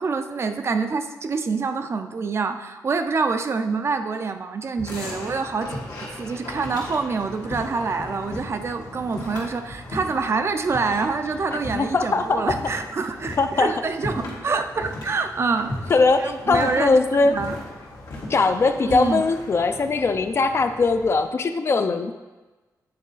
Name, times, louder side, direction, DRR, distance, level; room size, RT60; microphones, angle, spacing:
voice 1, 0.0-5.8 6.1-15.7 16.2-17.0 17.2-17.5 18.8-19.2, right 4 dB, 40° right, 7 dB, 0.4 m, -26 dB
sound 1, 4.8-21.2, left 1 dB, 85° left, 1.7 m, -37 dB
voice 2, 11.7-12.5 13.4-13.7 15.9-17.4 18.3-22.1, left 3 dB, 40° left, 8 dB, 0.4 m, -20 dB
8.7 x 4.0 x 3.9 m, 1.2 s
wide cardioid pair, 140°, 7 cm